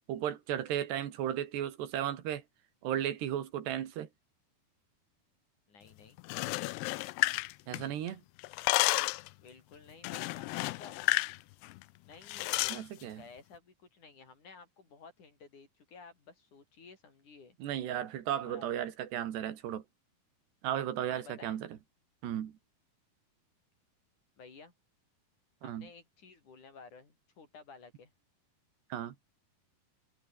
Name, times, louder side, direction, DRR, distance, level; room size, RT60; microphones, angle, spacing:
voice 1, 0.1-2.4 2.8-4.1 7.7-8.2 12.7-13.2 17.6-19.8 20.6-21.7 22.2-22.6 25.6-25.9 28.9-29.2, right 11 dB, 85° right, 4.3 m, -35 dB
voice 2, 5.7-6.2 9.4-10.9 12.1-17.6 18.4-18.6 21.1-21.6 24.4-24.7 25.6-28.1, left 4 dB, 50° left, 6.0 m, -54 dB
sound 1, 6.2-8.1 8.4-9.3 10.0-11.4 11.6-11.8 12.3-12.8, left 21 dB, 90° left, 2.7 m, -31 dB
omnidirectional pair, 4.7 m